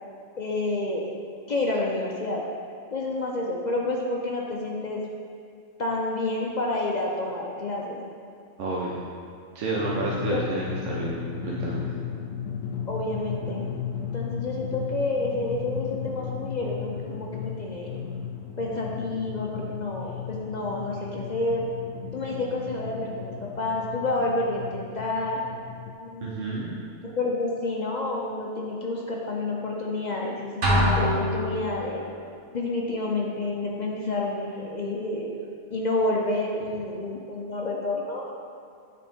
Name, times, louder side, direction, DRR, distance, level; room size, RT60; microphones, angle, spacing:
voice 1, 0.4-1.1 1.5-2.4 2.9-5.0 5.8-8.0 10.0-10.4 12.9-13.7 14.0-18.1 18.6-21.7 22.1-25.4 26.0-26.7 27.0-32.0 32.5-35.3 35.7-38.3, left 2 dB, 55° left, -2 dB, 0.5 m, -29 dB
voice 2, 8.6-9.0 9.5-11.9 26.2-26.9, right 2 dB, 70° right, -4 dB, 1.0 m, -30 dB
Drum, 9.7-25.9, left 7 dB, 75° left, 0.9 m, -35 dB
sound 1, 30.6-32.1, equal, 90° right, 1.6 m, -24 dB
8.4 x 4.2 x 3.5 m, 2.4 s
omnidirectional pair, 1.4 m